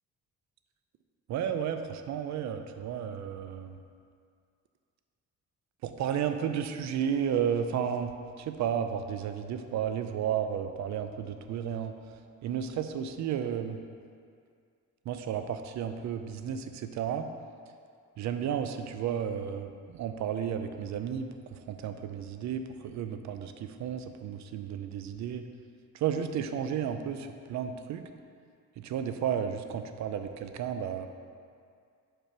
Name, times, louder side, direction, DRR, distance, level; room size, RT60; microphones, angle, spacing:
voice 1, 1.3-3.8 5.8-11.9 12.4-13.8 15.1-17.3 18.2-25.5 25.9-28.0 28.8-31.1, right 8 dB, 65° right, 8 dB, 0.5 m, -33 dB
5.0 x 4.5 x 6.0 m, 2.3 s
cardioid pair, 90°, 30 cm